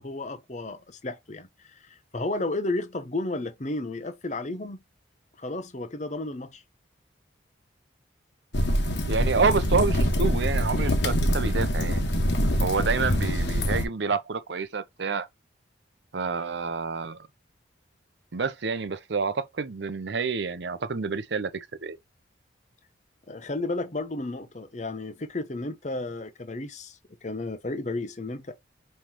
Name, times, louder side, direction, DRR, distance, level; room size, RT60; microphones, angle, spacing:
voice 1, 0.0-4.8 5.4-6.6 23.3-28.5, left 2 dB, 40° left, 0.8 m, -33 dB
sound 1, 8.5-13.9, equal, 65° left, 1.3 m, -24 dB
voice 2, 9.1-12.1 12.6-15.3 16.1-17.3 18.3-22.0, right 4 dB, 65° right, 0.6 m, -28 dB
5.6 x 3.2 x 2.9 m
head